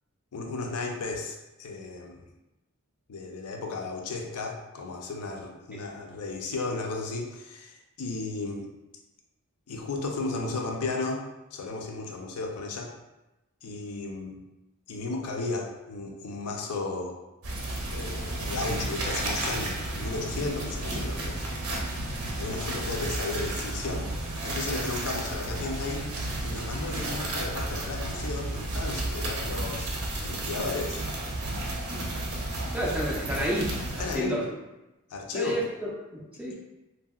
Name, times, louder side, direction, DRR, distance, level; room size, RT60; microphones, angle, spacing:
voice 1, 0.3-2.2 3.1-8.7 9.7-11.2 11.5-12.9 13.6-14.4 14.9-17.2 17.9-21.4 22.4-24.1 24.4-26.1 26.4-29.9 30.2-31.0 34.0-34.4 35.1-35.6, left 3 dB, 85° left, 1 dB, 0.5 m, -34 dB
sound 1, 17.4-34.2, right 2 dB, 70° right, 0.6 m, -32 dB
voice 2, 32.7-34.5 35.3-36.5, equal, 5° right, -4 dB, 0.3 m, -30 dB
2.8 x 2.7 x 2.3 m, 1.0 s
head